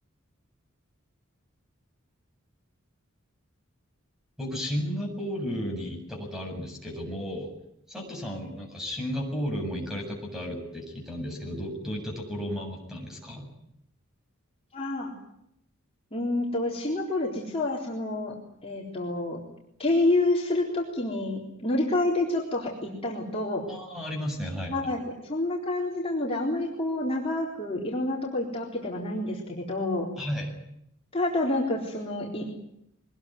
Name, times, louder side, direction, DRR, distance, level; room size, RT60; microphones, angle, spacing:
voice 1, 4.4-7.5 7.9-13.5 23.7-24.8 30.2-30.5, equal, ahead, 1 dB, 7.8 m, -33 dB
voice 2, 14.7-15.1 16.1-18.3 18.6-19.4 19.8-23.6 24.7-30.1 31.1-32.5, left 2 dB, 30° left, -3 dB, 3.9 m, -28 dB
23.5 x 20.5 x 9.4 m, 0.78 s
head